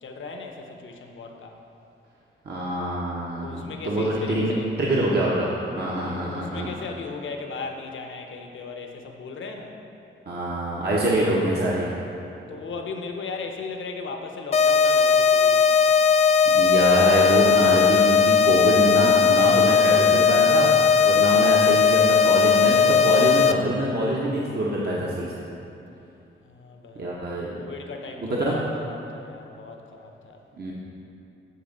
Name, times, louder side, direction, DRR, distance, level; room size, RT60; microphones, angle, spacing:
voice 1, 0.0-1.6 3.4-4.7 5.6-9.7 12.0-16.0 26.4-27.2 27.6-30.4, left 4 dB, 70° left, 3 dB, 0.9 m, -37 dB
voice 2, 2.4-5.5 5.8-6.7 10.3-11.9 16.5-20.7 21.0-25.4 27.0-27.5 28.2-28.6 30.5-30.7, right 1 dB, 50° right, -5 dB, 1.1 m, -25 dB
sound 1, 14.5-23.5, left 6 dB, 30° left, 0.4 m, -18 dB
9.7 x 3.5 x 6.6 m, 2.7 s
cardioid pair, 80°, 21 cm